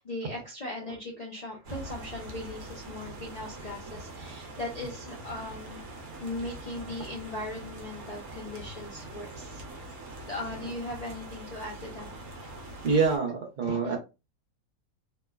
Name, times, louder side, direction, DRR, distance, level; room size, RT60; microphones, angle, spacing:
voice 1, 0.0-5.8 6.1-9.9 10.2-12.1 12.4-12.5 13.8-14.0, left 2 dB, 65° left, -2 dB, 0.4 m, -39 dB
sound 1, 1.6-13.2, right 1 dB, 70° right, 1.1 m, -43 dB
voice 2, 12.8-14.0, right 5 dB, 45° right, 2 dB, 0.7 m, -25 dB
3.0 x 2.1 x 2.2 m, 0.28 s
omnidirectional pair, 1.5 m